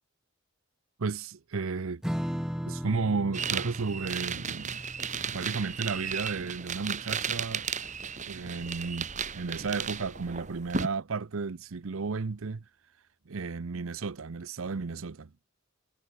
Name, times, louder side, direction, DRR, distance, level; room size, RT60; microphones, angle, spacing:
voice 1, 1.0-2.0 2.6-4.8 5.3-7.7 8.3-12.6 13.3-15.3, right 4 dB, 75° right, 0.7 m, -33 dB
Strum, 2.0-8.9, equal, 5° right, 1.2 m, -39 dB
sound 1, 3.3-10.9, right 6 dB, 35° right, 2.9 m, -35 dB
head